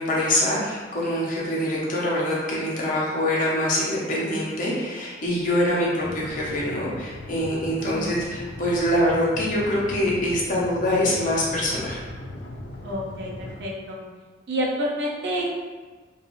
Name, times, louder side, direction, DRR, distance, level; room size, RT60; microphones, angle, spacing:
voice 1, 0.0-12.0, left 1 dB, 50° left, -5 dB, 0.7 m, -24 dB
sound 1, 6.0-13.6, left 1 dB, 85° left, 0.4 m, -39 dB
voice 2, 7.8-8.1 12.8-14.0 14.5-15.6, equal, 65° right, -2 dB, 0.5 m, -29 dB
2.5 x 2.3 x 3.0 m, 1.3 s
head